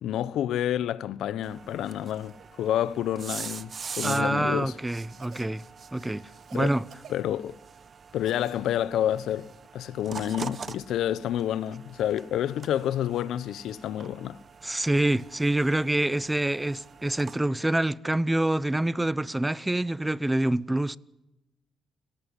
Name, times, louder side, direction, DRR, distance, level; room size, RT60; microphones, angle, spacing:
voice 1, 0.0-4.8 6.5-6.7 7.1-7.6 8.1-14.4, left 11 dB, 75° left, 1.0 m, -29 dB
sound 1, 1.4-17.4, right 5 dB, 40° right, 1.4 m, -43 dB
Cough, 2.3-2.5 3.4-4.2 5.2-5.5 6.4-7.6 8.2-8.6 9.2-9.3 11.1-11.2, right 8 dB, 60° right, 2.3 m, -52 dB
voice 2, 4.0-5.6 5.9-6.9 14.6-21.0, right 1 dB, 10° right, 0.8 m, -26 dB
29.5 x 17.5 x 9.9 m
cardioid pair, 90°, 0 cm